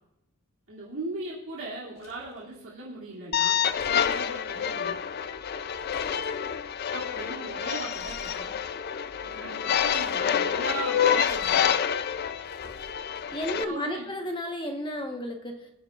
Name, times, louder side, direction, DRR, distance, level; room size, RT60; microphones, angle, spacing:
voice 1, 0.7-3.6 3.9-5.0 6.9-8.6 9.2-11.7 13.7-14.1, right 2 dB, 65° right, -6 dB, 2.7 m, -38 dB
sound 1, 2.0-2.4 3.4-4.4 5.5-6.5 7.9-8.4 8.9-9.0 9.6-10.4 11.1-11.7 12.0-13.5, left 1 dB, 65° left, 2.8 m, -51 dB
sound 2, 3.3-13.6, left 8 dB, 45° left, 0.4 m, -28 dB
voice 2, 13.3-15.7, left 1 dB, 20° left, 3 dB, 1.1 m, -33 dB
24.0 x 9.2 x 2.4 m, 0.88 s
head